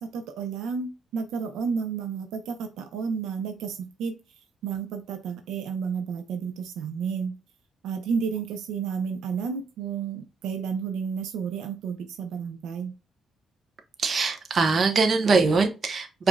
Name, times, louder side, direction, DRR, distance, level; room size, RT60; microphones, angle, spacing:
voice 1, 0.0-4.1 4.6-7.3 7.8-12.9, right 6 dB, 90° right, 6 dB, 0.6 m, -31 dB
voice 2, 14.0-16.3, right 4 dB, 45° right, 5 dB, 0.8 m, -22 dB
4.9 x 2.7 x 2.2 m, 0.29 s
cardioid pair, 90°, 0 cm